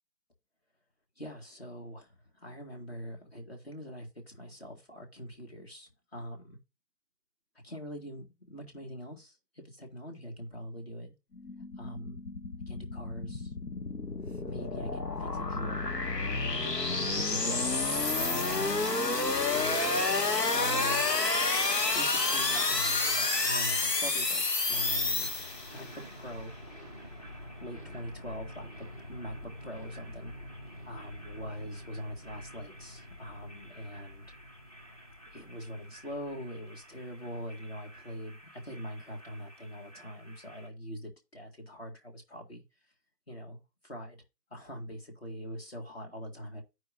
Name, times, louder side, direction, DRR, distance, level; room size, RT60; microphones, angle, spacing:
voice 1, 1.2-6.6 7.6-11.1 11.8-12.2 12.7-13.5 14.4-15.9 16.5-20.2 20.5-21.1 21.9-25.4 25.7-26.5 27.6-30.4 30.8-34.3 35.3-42.6 43.3-44.2 44.5-46.6, equal, 40° left, 1.9 m, -43 dB
sound 1, 11.4-25.9, left 3 dB, 90° left, 1.4 m, -30 dB
sound 2, 14.8-14.9 15.6-15.7 17.3-17.4 19.6-20.2 21.1-21.5 21.8-22.1 22.4-22.8 23.1-23.7, right 1 dB, 45° right, 0.5 m, -41 dB
sound 3, 24.7-40.7, equal, 25° left, 1.2 m, -49 dB
14.0 x 4.8 x 2.4 m
figure-of-eight pair, 170°, 48 cm